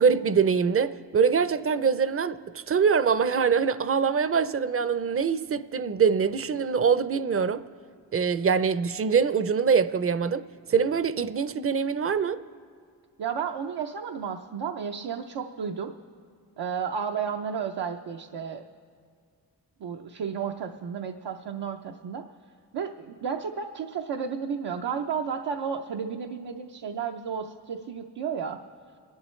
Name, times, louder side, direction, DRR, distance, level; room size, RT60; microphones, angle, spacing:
voice 1, 0.0-7.6 8.1-10.4 10.7-12.4, right 6 dB, 35° right, 0.5 m, -24 dB
voice 2, 13.2-15.9 16.6-18.6 19.8-22.2 22.7-28.6, right 6 dB, 75° right, 0.6 m, -32 dB
27.5 x 11.5 x 3.2 m
cardioid pair, 50°, 40 cm